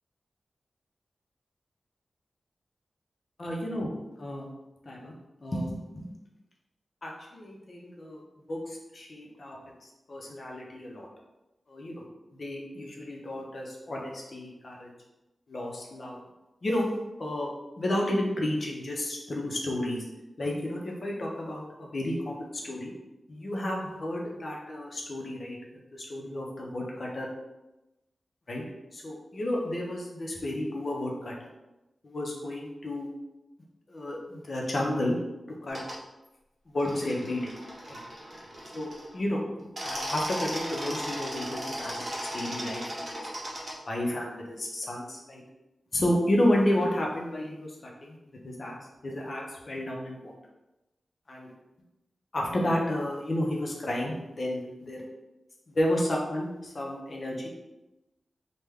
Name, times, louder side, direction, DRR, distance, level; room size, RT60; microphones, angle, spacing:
voice 1, 3.4-3.9 4.2-4.5 4.9-5.1 5.4-5.8 6.0-6.1 7.0-8.2 8.5-9.6 9.8-11.1 11.7-12.0 12.3-14.9 15.5-16.2 16.6-16.9 17.2-17.5 17.8-20.0 20.4-22.9 23.3-25.6 25.9-27.3 28.5-28.6 28.9-31.5 32.0-33.1 33.9-35.2 35.6-35.8 36.7-37.5 37.9-38.0 38.7-39.4 39.8-42.1 42.3-42.8 43.1-43.2 43.9-45.4 45.9-48.2 48.4-48.7 49.0-50.3 51.3-51.5 52.3-55.0 55.7-57.5, left 1 dB, 50° left, -2 dB, 0.6 m, -31 dB
sound 1, 35.7-35.9 36.8-39.1 39.6-43.7, equal, 40° right, 0.9 m, -36 dB
3.2 x 2.1 x 3.4 m, 0.99 s
wide cardioid pair, 125°, 0 cm